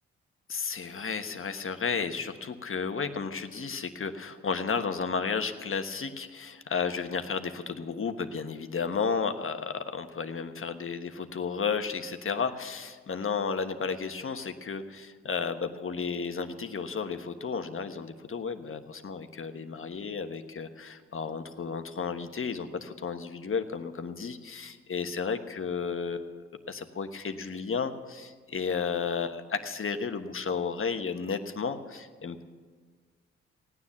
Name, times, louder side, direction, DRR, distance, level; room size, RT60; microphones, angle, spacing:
voice 1, 0.5-32.4, left 5 dB, 40° left, 8 dB, 1.3 m, -33 dB
16.5 x 9.7 x 7.2 m, 1.5 s
hypercardioid pair, 45°, 31 cm